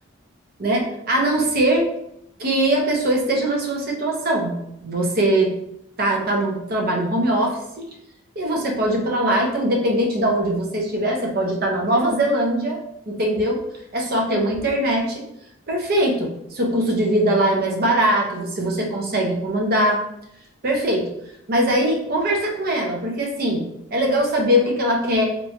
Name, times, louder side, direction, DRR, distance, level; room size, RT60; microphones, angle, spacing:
voice 1, 0.6-1.9 2.4-4.5 4.8-5.5 6.0-7.9 8.4-12.8 13.1-13.6 13.9-15.3 15.7-20.0 20.6-21.1 21.5-23.7 23.9-25.3, right 1 dB, 45° right, 0 dB, 0.5 m, -21 dB
2.8 x 2.2 x 2.8 m, 0.77 s
head